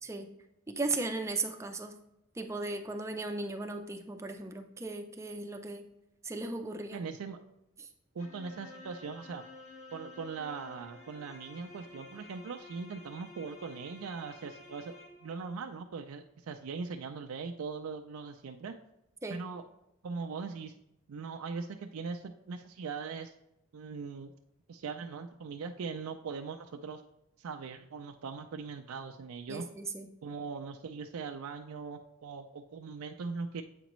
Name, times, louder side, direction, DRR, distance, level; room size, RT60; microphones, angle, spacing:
voice 1, 0.0-0.3 0.7-2.0 2.4-5.9 6.2-7.0 7.8-7.9 19.2-19.4 29.5-30.1, right 3 dB, 15° right, 5 dB, 0.5 m, -36 dB
voice 2, 6.9-7.4 8.1-9.4 9.9-14.9 15.2-18.7 19.3-19.6 20.0-20.7 21.1-23.3 23.7-24.3 24.7-27.0 27.4-29.6 30.2-33.6, right 5 dB, 85° right, 5 dB, 0.4 m, -40 dB
sound 1, 8.2-15.4, left 3 dB, 35° left, 1.3 m, -51 dB
8.0 x 5.0 x 3.0 m, 0.83 s
head